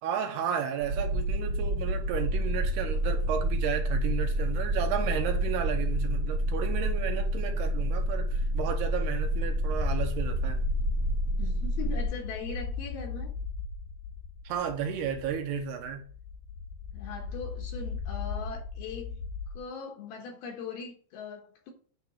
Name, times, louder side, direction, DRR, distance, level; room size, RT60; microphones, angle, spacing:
voice 1, 0.0-10.6 14.4-16.0, right 8 dB, 80° right, 3.2 m, -33 dB
sound 1, 0.8-12.0, right 1 dB, 60° right, 3.1 m, -28 dB
sound 2, 9.7-19.6, left 5 dB, 90° left, 1.7 m, -38 dB
voice 2, 11.4-13.3 16.9-19.2 19.5-21.7, left 5 dB, 70° left, 3.1 m, -40 dB
9.5 x 4.0 x 6.1 m
omnidirectional pair, 4.7 m